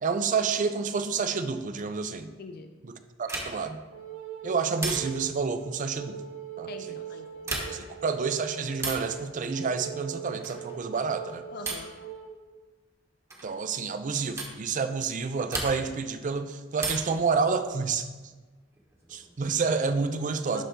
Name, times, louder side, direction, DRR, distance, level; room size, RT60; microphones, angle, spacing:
voice 1, 0.0-2.3 2.8-3.8 4.4-6.2 6.6-6.7 7.7-11.4 13.4-18.1 19.1-20.6, right 5 dB, 40° right, 9 dB, 0.5 m, -29 dB
voice 2, 2.4-2.7 6.7-7.9 11.5-11.9 20.5-20.6, left 4 dB, 50° left, 6 dB, 0.4 m, -43 dB
sound 1, 3.2-3.8 4.8-5.4 7.3-8.0 8.8-9.2 10.4-10.7 11.6-12.0 13.3-13.5 14.4-14.6 15.5-16.0 16.8-17.3 18.7-19.4, right 2 dB, 15° right, 1.0 m, -35 dB
Wind instrument woodwind instrument, 3.9-12.4, right 10 dB, 85° right, 0.9 m, -41 dB
11.5 x 4.0 x 3.6 m, 1.3 s
head